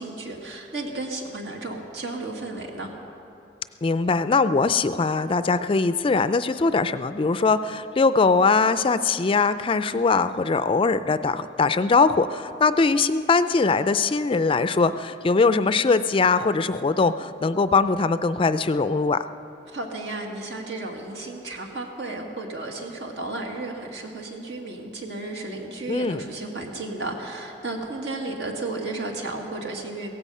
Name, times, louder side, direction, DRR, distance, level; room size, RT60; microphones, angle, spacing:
voice 1, 0.0-2.9 19.7-30.1, right 2 dB, 75° right, 1 dB, 2.0 m, -33 dB
voice 2, 3.8-19.3 25.9-26.3, left 4 dB, 30° left, 13 dB, 0.4 m, -21 dB
16.5 x 15.5 x 5.5 m, 2.8 s
head